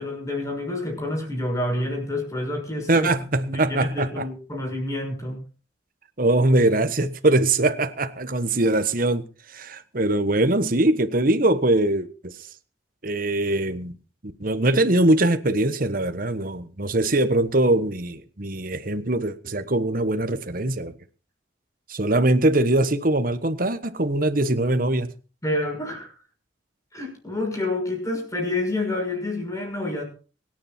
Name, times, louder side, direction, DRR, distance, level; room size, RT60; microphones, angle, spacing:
voice 1, 0.0-3.1 3.5-5.4 25.4-26.1 26.9-30.0, left 2 dB, 15° left, 6.5 m, -28 dB
voice 2, 2.9-4.3 6.2-12.3 13.0-14.0 14.2-21.0 21.9-25.1, right 2 dB, 45° right, 1.3 m, -22 dB
23.5 x 10.0 x 4.4 m
head